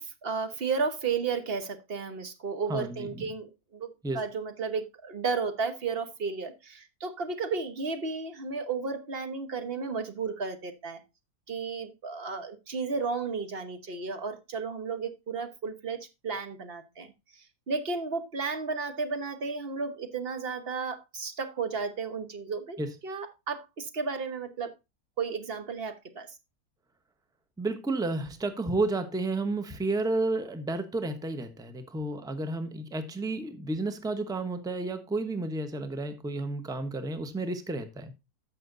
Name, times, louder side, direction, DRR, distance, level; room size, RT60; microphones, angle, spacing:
voice 1, 0.0-11.0 11.5-17.1 17.7-22.8 23.0-24.7 25.2-26.3, right 4 dB, 45° right, 1.2 m, -33 dB
voice 2, 2.7-3.2 4.0-4.2 22.8-22.9 27.6-38.1, right 2 dB, 5° right, 0.7 m, -31 dB
14.5 x 5.9 x 2.5 m
omnidirectional pair, 1.6 m